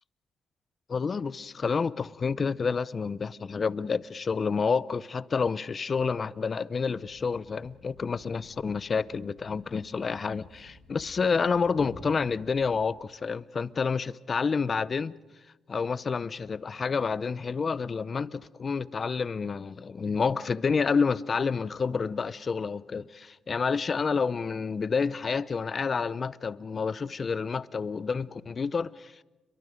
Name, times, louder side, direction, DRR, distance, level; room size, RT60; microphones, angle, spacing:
voice 1, 0.9-15.1 15.7-29.1, left 5 dB, 40° left, 0.7 m, -29 dB
Thump thud, 6.9-13.1, left 3 dB, 80° left, 7.7 m, -52 dB
29.5 x 23.0 x 5.1 m
cardioid pair, 90°, 0 cm